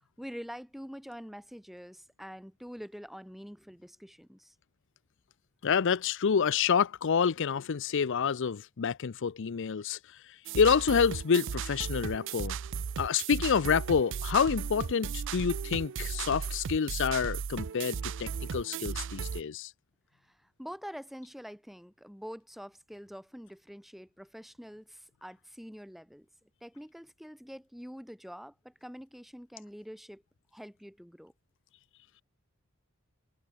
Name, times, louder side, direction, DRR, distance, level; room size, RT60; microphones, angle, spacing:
voice 1, 0.2-4.5 20.2-26.3 26.6-30.2 30.5-31.3, equal, ahead, 7.1 m, -46 dB
voice 2, 5.6-12.6 13.0-19.7, left 6 dB, 60° left, 0.5 m, -28 dB
sound 1, 10.5-19.4, right 6 dB, 60° right, 0.5 m, -36 dB
head